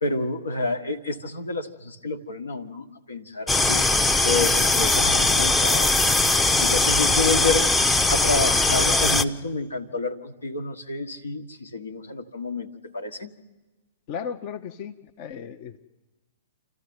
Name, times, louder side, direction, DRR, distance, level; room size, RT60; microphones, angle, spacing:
voice 1, 0.0-6.0 6.6-7.7 8.1-12.7 12.9-13.3, left 3 dB, 75° left, 7 dB, 1.5 m, -29 dB
sound 1, 3.5-9.2, left 2 dB, 10° left, 0.7 m, -20 dB
voice 2, 14.1-15.8, left 7 dB, 40° left, 7 dB, 0.8 m, -35 dB
27.5 x 13.5 x 9.5 m, 1.2 s
figure-of-eight pair, 110°, 0 cm